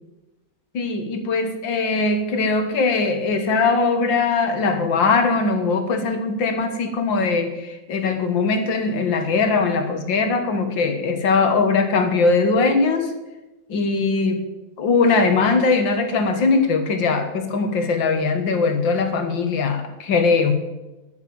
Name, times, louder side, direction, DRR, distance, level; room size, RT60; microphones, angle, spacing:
voice 1, 0.7-13.1 13.7-14.4 14.8-20.5, left 4 dB, 75° left, 7 dB, 2.1 m, -20 dB
10.5 x 9.7 x 7.1 m, 1.0 s
omnidirectional pair, 2.1 m